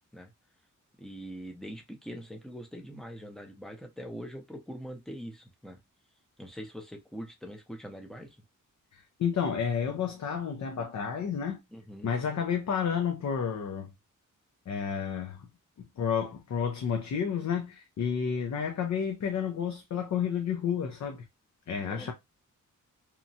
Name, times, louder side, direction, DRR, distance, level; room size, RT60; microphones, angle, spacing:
voice 1, 1.0-5.8 6.4-8.4 11.7-12.1 21.8-22.1, equal, ahead, 0.6 m, -43 dB
voice 2, 8.9-11.6 12.0-13.9 14.7-15.5 15.8-21.2 21.7-22.1, left 7 dB, 60° left, 0.5 m, -31 dB
2.9 x 2.2 x 2.6 m
wide cardioid pair, 120°, 32 cm